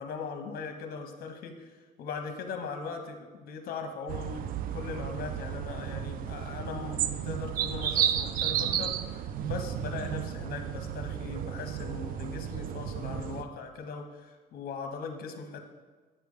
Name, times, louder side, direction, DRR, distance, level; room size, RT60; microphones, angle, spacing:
voice 1, 0.0-1.7 2.0-15.6, left 5 dB, 60° left, 5 dB, 1.1 m, -39 dB
sound 1, 4.1-13.4, right 10 dB, 60° right, 0.4 m, -33 dB
8.9 x 3.4 x 6.5 m, 1.4 s
cardioid pair, 110°, 17 cm